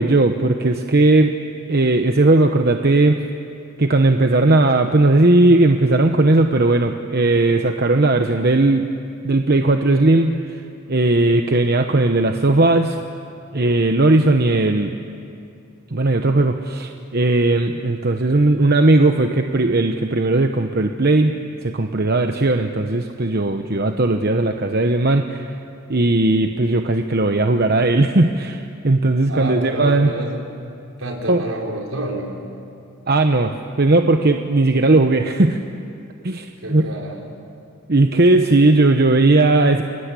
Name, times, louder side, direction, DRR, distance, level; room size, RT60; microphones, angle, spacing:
voice 1, 0.0-1.3 1.7-3.2 3.8-8.9 9.2-10.4 10.9-13.0 13.5-15.0 15.9-21.3 21.6-25.5 25.9-30.1 31.3-31.5 33.1-35.6 36.2-36.9 37.9-39.8, right 2 dB, 50° right, 5 dB, 1.0 m, -17 dB
voice 2, 29.3-30.4 31.0-32.4 36.6-37.3, right 1 dB, 75° right, 0 dB, 4.5 m, -28 dB
30.0 x 23.0 x 8.4 m, 2.6 s
head